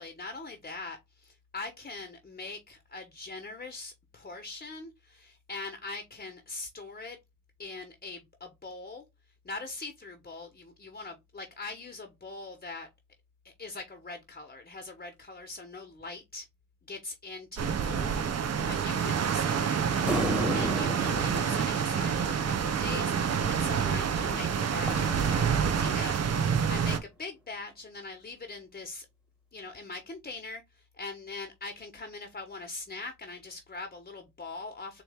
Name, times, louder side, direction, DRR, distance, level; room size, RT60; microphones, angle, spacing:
voice 1, 0.0-7.2 7.6-9.0 9.4-12.9 13.4-16.5 16.9-20.2 20.5-29.1 29.5-35.0, left 3 dB, 30° left, 1.0 m, -42 dB
sound 1, 17.6-27.0, right 7 dB, 60° right, 0.8 m, -28 dB
sound 2, 20.1-22.7 24.2-26.3, right 1 dB, 5° right, 1.5 m, -35 dB
4.1 x 3.1 x 3.5 m
cardioid pair, 65°, 29 cm